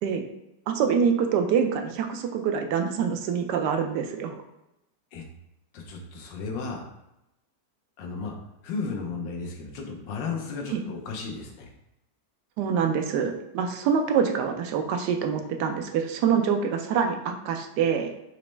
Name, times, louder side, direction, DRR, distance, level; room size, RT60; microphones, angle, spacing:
voice 1, 0.7-4.3 10.7-10.8 12.6-18.1, right 7 dB, 75° right, 5 dB, 1.1 m, -25 dB
voice 2, 5.7-6.8 8.0-8.3 8.6-11.7, left 4 dB, 85° left, 2 dB, 1.4 m, -34 dB
4.1 x 3.0 x 3.2 m, 0.89 s
omnidirectional pair, 2.0 m